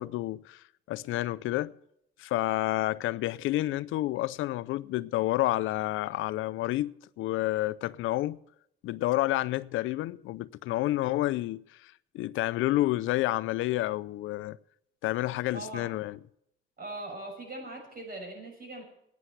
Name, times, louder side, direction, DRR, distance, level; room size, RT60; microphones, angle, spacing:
voice 1, 0.0-1.7 2.2-8.4 8.8-14.6 15.0-16.2, left 16 dB, 90° left, 0.5 m, -30 dB
voice 2, 15.5-16.0 16.8-18.8, right 2 dB, 45° right, 7.0 m, -40 dB
11.5 x 9.4 x 7.9 m
cardioid pair, 90°, 20 cm